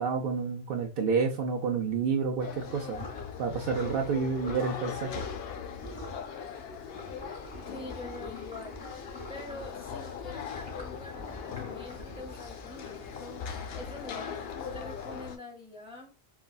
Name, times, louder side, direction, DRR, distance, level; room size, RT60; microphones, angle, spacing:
voice 1, 0.0-3.1 3.4-5.3, right 5 dB, 65° right, 0.8 m, -29 dB
sound 1, 2.4-15.4, left 7 dB, 70° left, 0.8 m, -40 dB
sound 2, 2.9-3.2 3.7-4.0 4.4-4.7 5.1-5.5 5.8-6.2 6.9-9.8 10.4-13.3, equal, 10° left, 1.4 m, -46 dB
voice 2, 7.7-8.8 9.3-14.5 14.7-16.2, left 2 dB, 5° right, 0.6 m, -45 dB
4.0 x 2.2 x 2.2 m
omnidirectional pair, 1.1 m